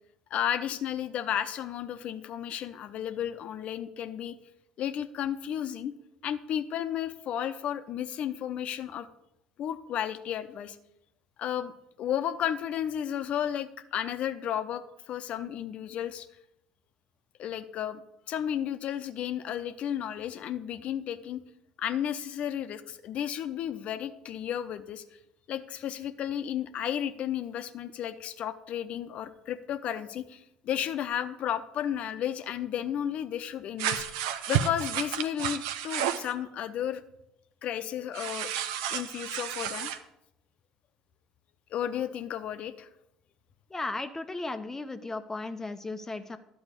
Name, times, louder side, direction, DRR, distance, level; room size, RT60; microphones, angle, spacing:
voice 1, 0.3-4.4 4.8-5.9 6.2-9.1 9.6-10.8 11.4-11.7 12.0-16.3 17.4-18.0 18.3-21.4 21.8-25.0 25.5-37.0 37.6-38.5 38.9-39.9 41.7-42.9, left 10 dB, 50° left, 11 dB, 0.8 m, -33 dB
sound 1, 33.8-36.3 38.1-40.0, right 10 dB, 70° right, 0.7 m, -31 dB
voice 2, 43.7-46.4, left 2 dB, 20° left, 9 dB, 0.7 m, -35 dB
11.5 x 4.8 x 8.2 m, 0.84 s
figure-of-eight pair, 60°, 3 cm